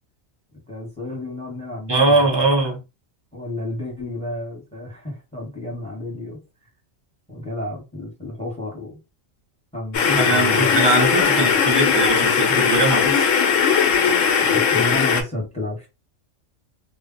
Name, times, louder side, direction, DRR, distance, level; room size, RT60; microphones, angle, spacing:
voice 1, 0.5-2.6 3.3-6.4 7.3-9.0 9.7-10.9 11.3-11.6 14.4-15.9, left 1 dB, 5° left, 0.9 m, -31 dB
voice 2, 1.9-2.8 10.2-13.2, right 2 dB, 35° right, 0.4 m, -20 dB
sound 1, 9.9-15.2, left 6 dB, 85° left, 1.0 m, -18 dB
2.2 x 2.0 x 3.7 m
omnidirectional pair, 1.3 m